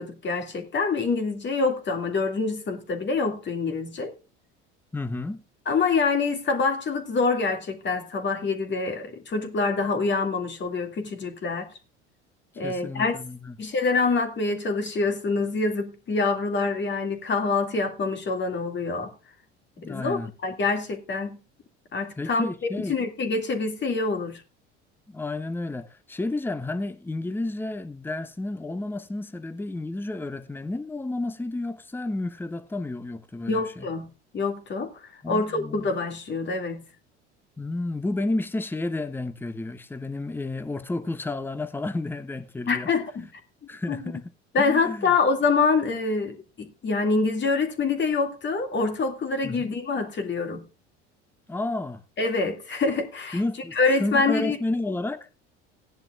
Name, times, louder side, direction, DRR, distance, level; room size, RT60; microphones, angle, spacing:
voice 1, 0.0-4.1 5.7-11.7 12.6-13.1 13.6-19.1 19.8-21.4 21.9-22.5 22.8-24.4 33.5-34.1 34.3-34.9 35.3-36.8 42.7-43.3 43.9-44.0 44.5-50.6 52.2-53.4 53.8-54.6, left 4 dB, 30° left, 2.4 m, -26 dB
voice 2, 4.9-5.4 12.6-13.6 19.8-20.3 22.2-23.0 25.1-33.9 35.2-35.9 37.6-42.9 43.7-45.1 49.4-49.7 51.5-52.0 53.3-55.3, left 2 dB, 5° left, 0.9 m, -31 dB
17.5 x 10.5 x 2.5 m
figure-of-eight pair, 65°, 35 cm